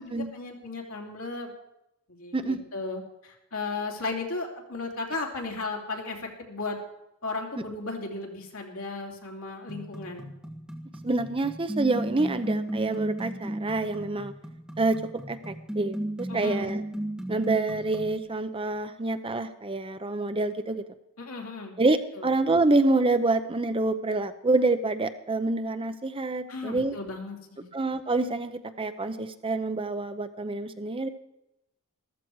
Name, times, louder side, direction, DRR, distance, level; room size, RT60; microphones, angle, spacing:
voice 1, 0.0-1.5 2.1-6.8 7.2-10.3 16.3-16.7 21.2-21.8 22.2-22.3 26.5-27.7, left 3 dB, 70° left, 1 dB, 3.1 m, -35 dB
sound 1, 9.7-18.2, right 1 dB, 5° right, 1.6 m, -35 dB
voice 2, 11.0-14.3 14.8-15.0 15.3-16.8 17.3-20.8 21.8-26.9 27.7-31.1, right 2 dB, 25° right, 10 dB, 0.7 m, -27 dB
14.5 x 14.0 x 4.7 m, 0.87 s
head